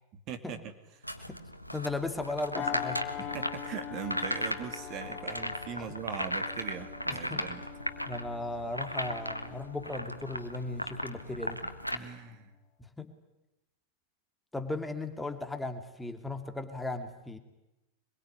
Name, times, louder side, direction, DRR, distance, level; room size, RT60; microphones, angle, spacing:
voice 1, 0.3-0.7 3.2-7.6 11.9-12.5, right 8 dB, 35° right, 7 dB, 2.6 m, -40 dB
sound 1, 1.0-12.0, equal, 90° left, 1.6 m, -37 dB
voice 2, 1.7-3.3 5.8-5.9 7.1-7.4 8.1-11.6 12.8-13.1 14.5-17.4, left 2 dB, 5° left, 7 dB, 2.4 m, -37 dB
sound 2, 2.5-11.4 11.9-12.1, left 10 dB, 20° left, 2.9 m, -43 dB
25.0 x 22.0 x 9.8 m, 0.94 s
figure-of-eight pair, 90°, 0 cm